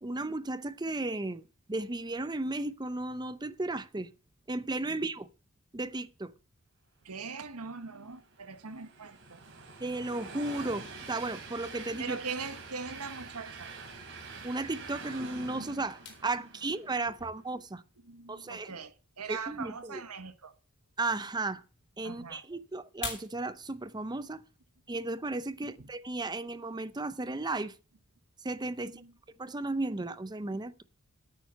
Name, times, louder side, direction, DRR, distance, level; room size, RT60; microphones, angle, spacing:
voice 1, 0.0-1.4 1.7-4.1 4.5-5.3 5.7-6.3 9.8-12.2 14.4-17.8 18.3-18.7 19.3-20.0 21.0-21.6 22.0-24.4 24.9-27.7 28.4-29.0 29.4-30.8, right 2 dB, 20° right, 0.7 m, -34 dB
voice 2, 7.0-9.4 12.0-13.7 16.3-16.5 17.2-17.3 18.0-20.6 22.0-22.4 25.8-25.9 28.8-29.2, right 5 dB, 85° right, 1.5 m, -42 dB
Train, 7.7-17.2, right 4 dB, 60° right, 3.8 m, -46 dB
sound 1, 16.0-26.8, left 6 dB, 50° left, 4.1 m, -50 dB
9.3 x 9.3 x 6.7 m
head